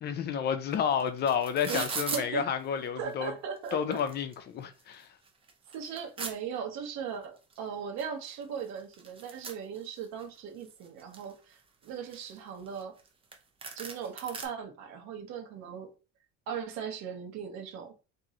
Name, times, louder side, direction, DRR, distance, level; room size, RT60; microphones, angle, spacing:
voice 1, 0.0-3.3 3.7-5.1, left 8 dB, 35° left, 0.5 m, -30 dB
sound 1, 0.7-0.8 1.0-2.2 3.1-3.2 3.6-4.3 4.8-4.9 5.3-6.3 7.5-7.6 8.0-8.1 8.3-10.2 10.6-11.3 11.8-13.1 13.3-13.4 13.6-14.4, right 4 dB, 20° right, 0.5 m, -39 dB
voice 2, 1.7-2.5 3.0-4.0 5.7-13.0 13.7-15.9 16.5-17.9, right 7 dB, 65° right, 1.0 m, -38 dB
3.0 x 2.7 x 3.7 m
cardioid pair, 160°, 30 cm